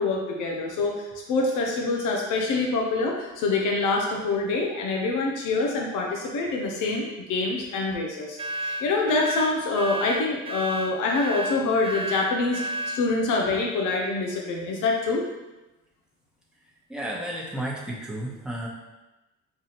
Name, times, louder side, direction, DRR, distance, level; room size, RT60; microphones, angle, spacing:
voice 1, 0.0-15.2, left 3 dB, 85° left, 0 dB, 0.7 m, -26 dB
sound 1, 8.4-13.0, right 1 dB, 20° right, 0.3 m, -32 dB
voice 2, 16.9-18.7, right 1 dB, 5° right, -4 dB, 0.9 m, -32 dB
5.5 x 2.3 x 2.9 m, 1.0 s
cardioid pair, 90°, 30 cm